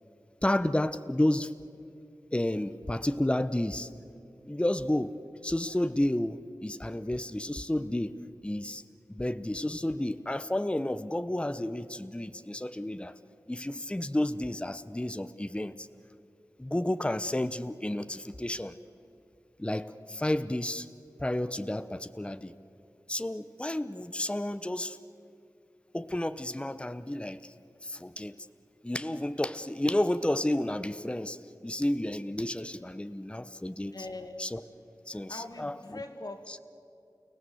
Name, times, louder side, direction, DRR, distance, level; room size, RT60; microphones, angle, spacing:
voice 1, 0.4-1.5 2.3-3.9 4.5-8.2 8.4-8.8 9.1-13.1 13.5-15.9 16.6-18.7 19.6-20.9 21.2-22.5 23.1-25.0 25.9-27.5 27.8-28.5 28.8-34.0 34.4-34.6 35.1-35.8 36.5-36.6, left 1 dB, 15° left, 12 dB, 0.8 m, -31 dB
voice 2, 33.9-34.5 35.3-36.6, left 2 dB, 60° left, 5 dB, 2.2 m, -42 dB
30.0 x 17.5 x 7.9 m, 2.6 s
wide cardioid pair, 60°, 8 cm